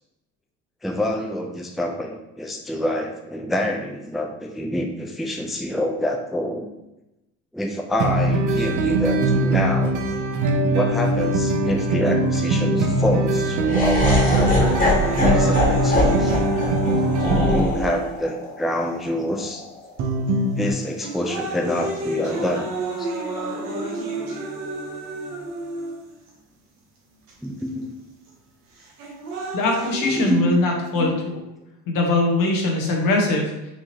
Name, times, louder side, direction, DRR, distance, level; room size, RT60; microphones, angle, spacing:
voice 1, 0.8-6.7 7.5-10.0 10.7-14.8 15.2-16.4 17.2-19.6 20.6-22.7 23.0-23.1 27.4-27.9 30.1-30.6 31.0-31.1, equal, ahead, 2 dB, 0.4 m, -26 dB
sound 1, 8.0-17.6 20.0-20.7, right 2 dB, 60° right, 0.7 m, -21 dB
Laughter, 13.7-19.8, left 1 dB, 25° left, 1.5 m, -23 dB
sound 2, 14.3-18.3 19.0-19.1 20.0-20.3 20.8-26.3 27.3-27.4 28.8-30.3, right 2 dB, 85° right, 1.1 m, -30 dB
voice 2, 29.5-31.4 31.9-33.7, left 2 dB, 70° left, 0 dB, 1.2 m, -21 dB
4.7 x 2.8 x 2.9 m, 0.93 s
supercardioid pair, 80°, 35 cm